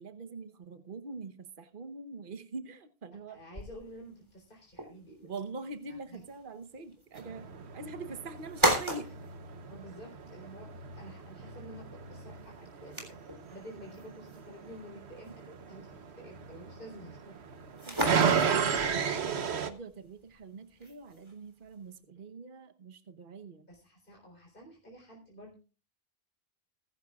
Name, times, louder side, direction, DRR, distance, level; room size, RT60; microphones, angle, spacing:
voice 1, 0.0-3.4 5.2-9.1 19.3-23.7, right 3 dB, 55° right, 8 dB, 1.2 m, -44 dB
voice 2, 3.3-5.3 5.9-6.2 9.0-9.1 9.7-17.4 23.7-25.5, equal, 55° left, -1 dB, 4.0 m, -50 dB
sound 1, 3.5-22.0, right 1 dB, 25° right, 3.5 m, -38 dB
sound 2, 7.2-19.7, right 6 dB, 85° right, 1.3 m, -34 dB
21.5 x 11.0 x 2.4 m, 0.33 s
omnidirectional pair, 1.1 m